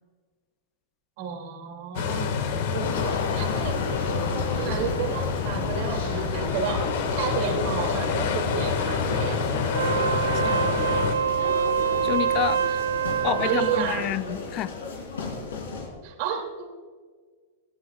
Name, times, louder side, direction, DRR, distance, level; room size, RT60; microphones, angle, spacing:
voice 1, 1.2-2.4 2.7-3.8 4.6-6.9 7.2-9.9 10.2-10.8 12.7-12.8 13.2-14.1 16.0-16.7, right 7 dB, 55° right, 2.6 m, -32 dB
sound 1, 1.9-11.1, left 6 dB, 65° left, 1.7 m, -27 dB
sound 2, 2.8-15.9, left 3 dB, 80° left, 3.5 m, -33 dB
Wind instrument woodwind instrument, 9.6-13.9, right 8 dB, 80° right, 0.6 m, -25 dB
voice 2, 12.0-12.6 13.2-14.7, left 14 dB, 40° left, 0.3 m, -29 dB
17.0 x 15.5 x 2.4 m
hypercardioid pair, 110°, 0 cm